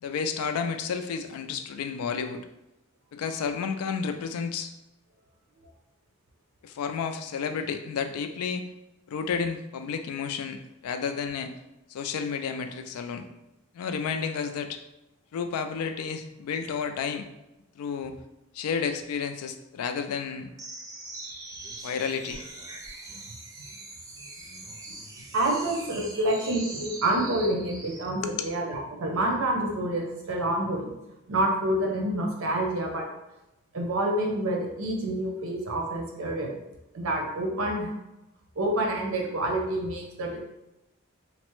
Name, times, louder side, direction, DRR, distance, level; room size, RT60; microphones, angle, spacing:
voice 1, 0.0-2.4 3.1-4.7 6.6-8.6 9.1-11.5 11.9-13.3 13.7-14.8 15.3-17.3 17.8-18.1 18.5-20.5 21.8-22.4 28.2-28.5, left 6 dB, 90° left, 8 dB, 0.3 m, -31 dB
sound 1, 20.6-28.1, right 2 dB, 15° right, 0.3 m, -42 dB
voice 2, 25.3-30.9 31.3-33.1 33.7-36.6 36.9-37.9 38.6-40.4, right 1 dB, 70° right, 1 dB, 0.6 m, -28 dB
3.2 x 2.0 x 3.0 m, 0.93 s
head